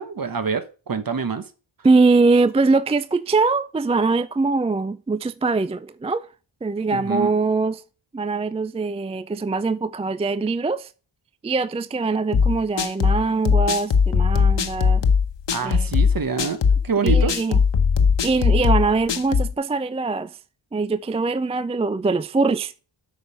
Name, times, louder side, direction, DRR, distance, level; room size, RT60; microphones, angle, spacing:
voice 1, 0.0-1.4 6.9-7.3 15.5-16.6 16.8-17.4, right 5 dB, 45° right, 1.1 m, -26 dB
voice 2, 1.8-6.3 6.6-7.8 8.1-10.9 11.4-15.0 15.6-15.9 17.0-17.6 18.2-20.4 20.7-22.7, right 3 dB, 15° right, 0.3 m, -22 dB
sound 1, 12.3-19.5, left 6 dB, 65° left, 1.0 m, -19 dB
8.1 x 5.5 x 5.5 m
cardioid pair, 70°, 47 cm